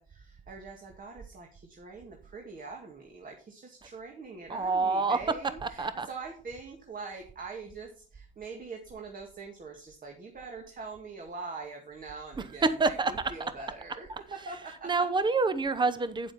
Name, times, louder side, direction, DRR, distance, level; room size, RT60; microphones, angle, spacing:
voice 1, 0.1-14.9, right 4 dB, 45° right, 1 dB, 2.0 m, -43 dB
voice 2, 4.5-5.2 5.6-6.1 12.8-13.1 14.8-16.3, right 4 dB, 25° right, 12 dB, 0.8 m, -27 dB
9.0 x 7.6 x 4.2 m, 0.42 s
cardioid pair, 90°, 20 cm